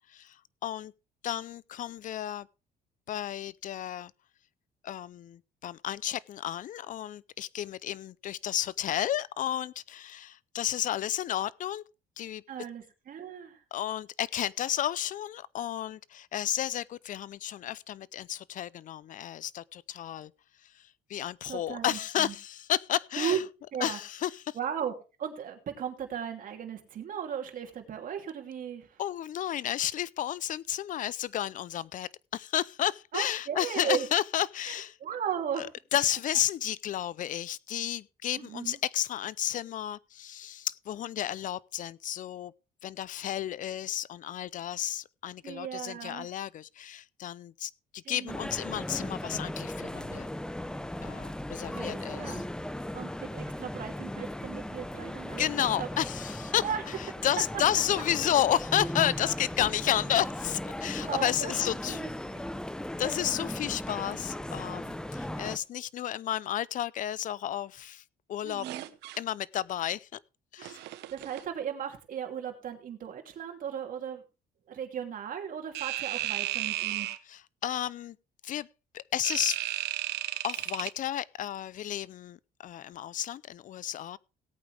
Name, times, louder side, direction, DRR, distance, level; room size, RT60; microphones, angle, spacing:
voice 1, 0.1-0.9 1.2-2.5 3.1-4.1 4.8-11.8 12.2-12.4 13.7-20.3 20.6-23.4 23.8-24.6 29.0-35.0 35.6-42.5 42.8-50.3 51.0-52.4 55.4-56.7 57.0-62.0 63.0-68.0 68.3-68.7 69.2-70.2 70.5-70.8 77.3-78.2 78.4-78.7 78.9-79.6 80.4-84.2, left 11 dB, 50° left, 0.5 m, -32 dB
voice 2, 12.5-13.6 21.5-22.3 23.2-23.4 23.7-24.0 24.5-24.9 25.2-29.0 33.1-34.1 34.7-35.6 38.4-38.8 45.4-46.3 48.0-48.4 51.7-52.4 52.9-55.9 56.6-56.8 61.0-61.5 61.9-62.1 68.4-68.9 71.1-74.2 74.7-77.1, right 8 dB, 55° right, 2.8 m, -36 dB
sound 1, 48.3-65.6, left 1 dB, 5° left, 0.6 m, -37 dB
sound 2, 68.6-69.2 70.6-71.4 75.7-77.2 79.2-80.9, right 15 dB, 80° right, 0.9 m, -34 dB
18.0 x 8.6 x 3.4 m
cardioid pair, 110°, 17 cm